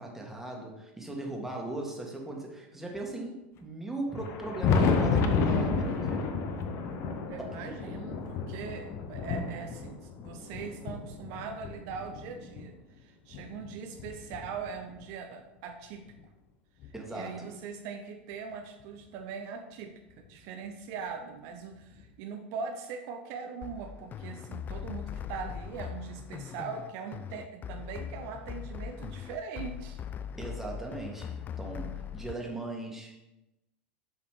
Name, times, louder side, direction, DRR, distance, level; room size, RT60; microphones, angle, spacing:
voice 1, 0.0-6.3 7.4-8.0 16.9-17.5 30.4-33.2, right 2 dB, 5° right, -1 dB, 1.7 m, -39 dB
Thunder, 4.1-12.7 13.3-15.0 16.2-16.3 16.8-16.9 18.8-18.9 20.2-20.3 21.9-22.0, left 4 dB, 45° left, 0.8 m, -31 dB
voice 2, 7.3-16.0 17.1-19.9 20.3-30.0, right 6 dB, 55° right, 5 dB, 0.7 m, -41 dB
sound 1, 23.6-32.3, left 8 dB, 30° left, 0.3 m, -40 dB
7.0 x 3.9 x 4.8 m, 0.97 s
hypercardioid pair, 90°, 6 cm